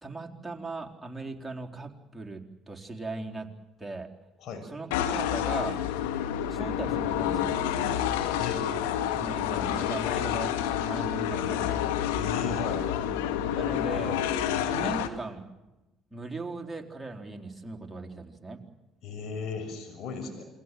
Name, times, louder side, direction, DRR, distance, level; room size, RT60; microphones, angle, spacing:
voice 1, 0.0-3.5 3.8-4.1 4.6-5.8 6.5-7.5 9.2-11.9 13.6-14.2 14.7-15.5 16.1-18.6, right 3 dB, 10° right, 0 dB, 4.1 m, -38 dB
sound 1, 4.9-15.1, left 10 dB, 80° left, 2.2 m, -29 dB
voice 2, 12.2-12.9 19.0-20.4, left 5 dB, 55° left, 6 dB, 6.3 m, -36 dB
28.0 x 23.0 x 7.8 m, 1.0 s
hypercardioid pair, 60°, 0 cm